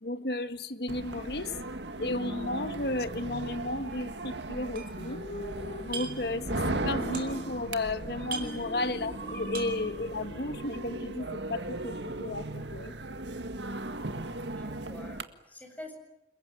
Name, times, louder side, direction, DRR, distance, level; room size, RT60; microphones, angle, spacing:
voice 1, 0.0-1.5 2.0-5.2 5.8-12.9, left 2 dB, 60° left, 1.6 m, -33 dB
sound 1, 0.9-15.2, right 2 dB, 85° right, 1.8 m, -37 dB
sound 2, 3.9-4.2 4.5-5.4 5.7-6.3 6.6-7.6 7.9-8.0 8.2-9.2 9.4-9.9, right 4 dB, 55° right, 5.1 m, -41 dB
sound 3, 4.7-11.8, left 1 dB, 40° left, 1.5 m, -44 dB
voice 2, 14.4-15.9, left 1 dB, 10° left, 7.5 m, -47 dB
29.0 x 21.5 x 9.5 m
head